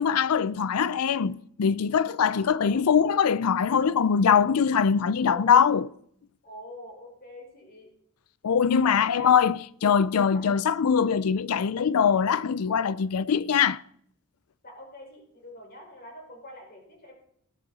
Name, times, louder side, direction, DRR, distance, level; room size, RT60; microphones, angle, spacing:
voice 1, 0.0-5.9 8.4-13.8, left 7 dB, 80° left, 0.5 m, -22 dB
voice 2, 2.3-2.8 5.2-5.7 6.4-7.9 8.7-9.4 10.3-10.5 14.6-17.1, equal, 45° left, 5.1 m, -46 dB
16.0 x 12.0 x 4.1 m
head